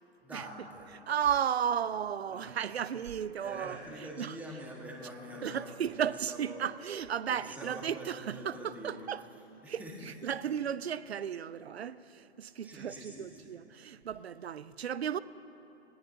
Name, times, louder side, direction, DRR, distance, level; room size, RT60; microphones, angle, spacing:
voice 1, 0.2-0.9 2.3-2.9 3.4-6.6 7.3-10.2 12.6-13.5 13.9-14.0, equal, 5° right, 1.7 m, -46 dB
voice 2, 1.1-3.8 4.2-4.3 5.4-9.2 9.7-9.8 10.2-15.2, right 8 dB, 70° right, 0.6 m, -34 dB
19.5 x 18.5 x 2.9 m
figure-of-eight pair, 135°, 33 cm